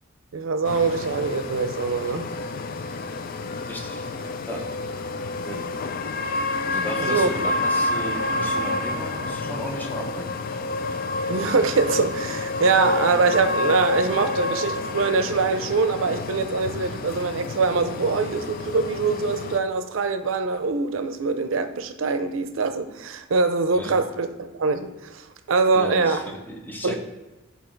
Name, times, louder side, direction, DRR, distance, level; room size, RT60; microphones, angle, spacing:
voice 1, 0.3-2.3 7.0-7.3 11.3-25.2 25.5-26.2 26.8-26.9, right 4 dB, 75° right, 9 dB, 0.5 m, -23 dB
sound 1, 0.6-19.6, left 2 dB, 45° left, 0.4 m, -29 dB
voice 2, 3.7-4.1 4.5-4.7 5.4-5.7 6.6-10.4 23.7-24.0 25.7-26.9, left 1 dB, 10° left, 1 dB, 0.8 m, -34 dB
8.2 x 2.8 x 4.4 m, 1.1 s
head